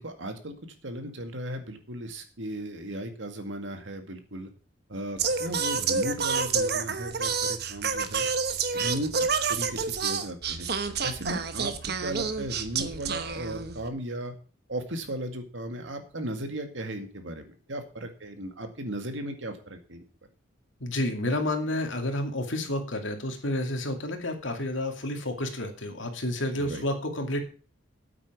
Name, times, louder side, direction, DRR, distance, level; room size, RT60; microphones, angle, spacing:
voice 1, 0.0-4.5 4.9-10.7 11.0-14.3 14.7-17.4 17.7-20.0 26.5-26.8, right 1 dB, 80° right, 6 dB, 2.1 m, -36 dB
Singing, 5.2-13.9, right 5 dB, 55° right, 1.0 m, -29 dB
voice 2, 20.8-27.4, left 1 dB, 85° left, 5 dB, 2.4 m, -30 dB
9.1 x 8.6 x 6.0 m, 0.36 s
head